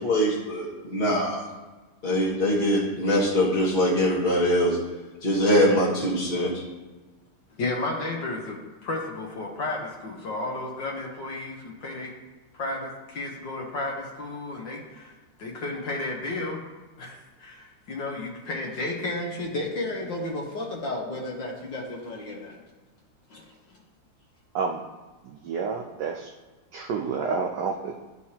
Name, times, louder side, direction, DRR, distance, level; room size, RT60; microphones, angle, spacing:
voice 1, 0.0-1.4 2.0-4.8 5.2-6.5, equal, 30° left, -7 dB, 1.2 m, -23 dB
voice 2, 7.6-12.1 12.5-16.6 17.0-22.6, left 2 dB, 60° left, -1 dB, 1.5 m, -33 dB
voice 3, 25.2-26.3 26.7-28.0, right 5 dB, 75° right, 2 dB, 1.0 m, -29 dB
12.0 x 4.8 x 2.8 m, 1.3 s
omnidirectional pair, 2.4 m